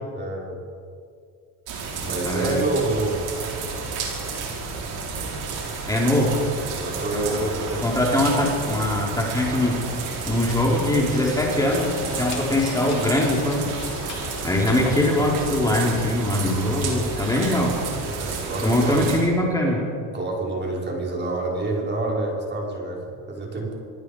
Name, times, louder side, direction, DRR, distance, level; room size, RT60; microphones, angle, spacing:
voice 1, 0.1-0.6 2.0-3.2 6.7-7.7 18.0-19.1 20.1-23.8, right 2 dB, 25° right, -1 dB, 5.0 m, -28 dB
sound 1, 1.7-19.2, right 4 dB, 60° right, 5.9 m, -31 dB
voice 2, 2.2-2.6 5.9-6.4 7.1-9.8 10.2-13.7 14.4-17.8 18.6-19.8, left 1 dB, 10° left, -3 dB, 4.3 m, -22 dB
sound 2, 9.9-16.1, left 7 dB, 90° left, 3.2 m, -40 dB
27.5 x 19.5 x 5.1 m, 2.3 s
cardioid pair, 115°, 42 cm